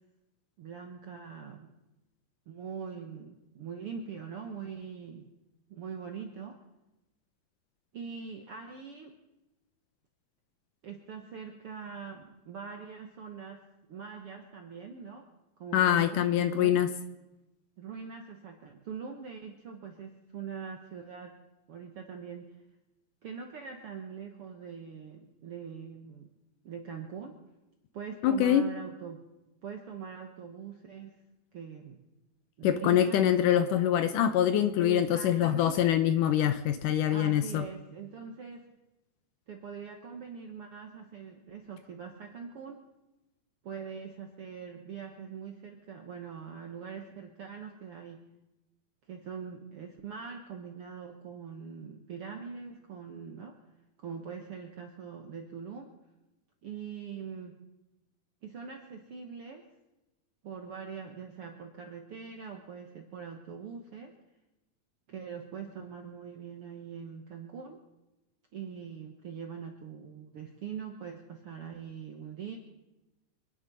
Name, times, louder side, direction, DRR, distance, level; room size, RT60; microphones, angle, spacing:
voice 1, 0.6-1.7 2.5-5.3 5.7-6.6 7.9-9.1 10.8-15.2 15.6-16.8 17.8-21.3 21.7-22.6 23.2-26.3 26.6-27.4 27.9-29.2 29.6-31.2 31.5-32.0 32.6-33.2 34.8-35.9 37.1-38.7 39.5-42.8 43.6-48.2 49.1-53.5 54.0-55.9 56.6-57.5 58.4-59.6 60.4-64.1 65.1-67.8 68.5-72.6, right 6 dB, 65° right, 3 dB, 1.4 m, -42 dB
voice 2, 15.7-16.9 28.2-28.6 32.6-37.6, left 10 dB, 75° left, 11 dB, 2.0 m, -24 dB
26.5 x 10.0 x 5.4 m, 1.0 s
omnidirectional pair, 4.2 m